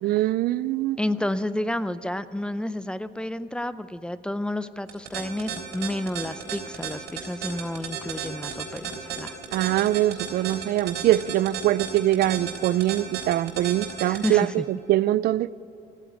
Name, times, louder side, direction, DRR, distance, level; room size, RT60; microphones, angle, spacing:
voice 1, 0.0-1.0 9.5-14.6 14.9-15.5, right 14 dB, 65° right, 19 dB, 0.4 m, -23 dB
voice 2, 1.0-9.4 9.6-9.8 14.0-14.7, left 1 dB, 5° left, 14 dB, 0.5 m, -30 dB
sound 1, 4.9-14.3, right 9 dB, 85° right, 3.5 m, -32 dB
15.0 x 9.3 x 9.1 m, 2.8 s
cardioid pair, 110°, 17 cm